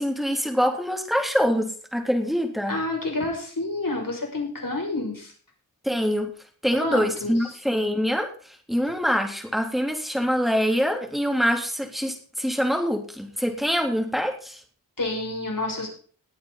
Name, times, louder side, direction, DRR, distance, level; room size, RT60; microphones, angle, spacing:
voice 1, 0.0-2.8 5.8-6.3 6.6-14.6, equal, ahead, 3 dB, 3.4 m, -25 dB
voice 2, 2.7-5.3 6.8-7.5 15.0-15.9, left 2 dB, 65° left, 1 dB, 6.0 m, -29 dB
19.5 x 8.6 x 4.0 m, 0.43 s
wide cardioid pair, 60°, 36 cm